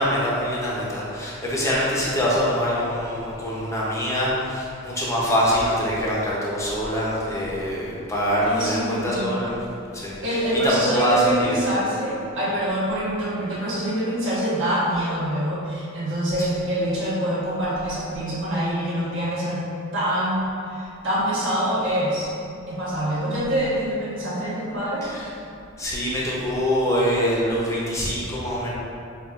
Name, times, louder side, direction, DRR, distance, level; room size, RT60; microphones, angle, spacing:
voice 1, 0.0-9.6 9.9-11.6 25.1-25.3 25.8-28.7, equal, 15° left, -6 dB, 0.6 m, -24 dB
voice 2, 8.4-9.4 10.2-19.6 19.9-22.3 22.7-25.1, equal, 65° right, -9 dB, 1.1 m, -25 dB
6.0 x 2.4 x 2.4 m, 2.6 s
head